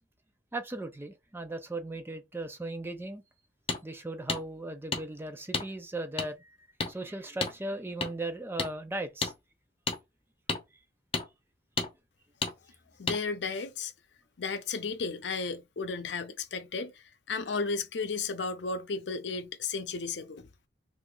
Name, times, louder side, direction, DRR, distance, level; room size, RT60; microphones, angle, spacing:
voice 1, 0.5-3.2 3.8-6.6 6.9-9.3, right 2 dB, 15° right, 0.5 m, -37 dB
sound 1, 3.7-3.8 4.3-4.4 4.9-5.0 5.5-5.7 6.2-6.3 6.8-6.9 7.4-7.5 8.0-8.1 8.6-8.7 9.2-9.3 9.9-10.0 10.5-10.6 11.1-11.3 11.8-11.9 12.4-12.5 13.1-13.2, left 4 dB, 35° left, 0.7 m, -30 dB
voice 2, 13.0-13.9 14.4-16.9 17.3-20.5, left 4 dB, 80° left, 0.6 m, -34 dB
2.8 x 2.5 x 3.7 m
head